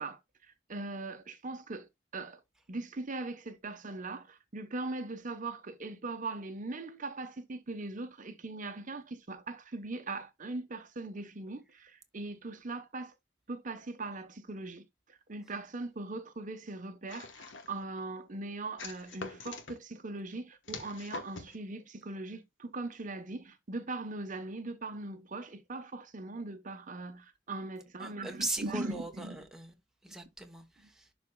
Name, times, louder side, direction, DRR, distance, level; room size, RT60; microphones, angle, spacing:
voice 1, 0.0-2.4 2.7-13.1 13.5-29.4 30.8-30.9, right 2 dB, 45° right, 0.9 m, -40 dB
sound 1, 17.1-17.8 18.8-19.8 20.7-21.6, left 3 dB, 80° left, 1.2 m, -44 dB
voice 2, 28.0-29.7 30.0-31.1, right 2 dB, 5° right, 1.0 m, -39 dB
11.5 x 4.2 x 2.2 m
head